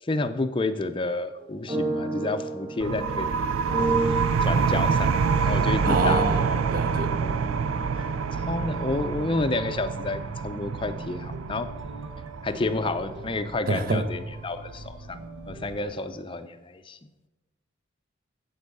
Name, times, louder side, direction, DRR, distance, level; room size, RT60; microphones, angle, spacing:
voice 1, 0.0-3.3 4.4-6.6 7.1-7.6 7.9-8.0 8.3-11.7 12.4-17.0, left 2 dB, 25° left, 10 dB, 0.5 m, -30 dB
sound 1, 1.4-8.9, right 2 dB, 25° right, 2.7 m, -32 dB
sound 2, 2.8-14.2, right 6 dB, 90° right, 0.4 m, -27 dB
sound 3, 5.1-15.8, right 2 dB, 70° right, 1.1 m, -42 dB
voice 2, 5.8-7.1 13.7-14.0, right 3 dB, 45° right, 8 dB, 0.8 m, -26 dB
8.2 x 7.8 x 5.4 m, 1.1 s
head